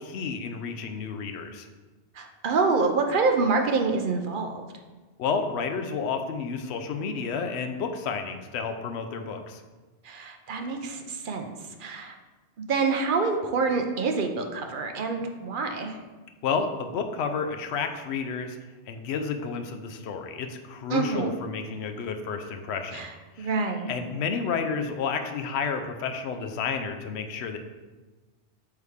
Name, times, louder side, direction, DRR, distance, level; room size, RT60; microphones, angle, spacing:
voice 1, 0.0-1.7 5.2-9.6 16.4-18.6 18.9-23.1 23.4-23.5 23.9-27.6, left 5 dB, 70° left, 6 dB, 0.9 m, -31 dB
voice 2, 2.2-4.6 10.0-11.5 11.8-12.1 12.6-16.0 20.9-21.3 22.9-23.1 23.4-23.9, right 4 dB, 55° right, 4 dB, 0.7 m, -26 dB
8.1 x 3.3 x 3.5 m, 1.3 s
omnidirectional pair, 1.2 m